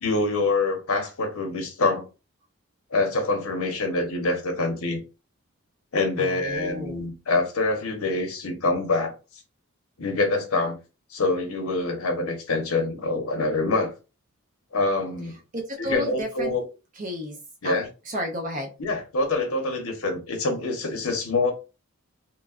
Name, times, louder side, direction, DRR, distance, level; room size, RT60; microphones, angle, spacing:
voice 1, 0.0-2.1 2.9-5.0 5.9-9.1 10.0-10.8 11.1-13.9 14.7-15.3 15.8-16.6 17.6-17.9 18.8-21.5, left 3 dB, 75° left, 0.8 m, -25 dB
voice 2, 6.2-7.0 15.5-16.5 17.0-17.4 17.6-17.8 18.1-18.7, left 1 dB, 35° right, 0.5 m, -32 dB
3.0 x 2.3 x 2.4 m
head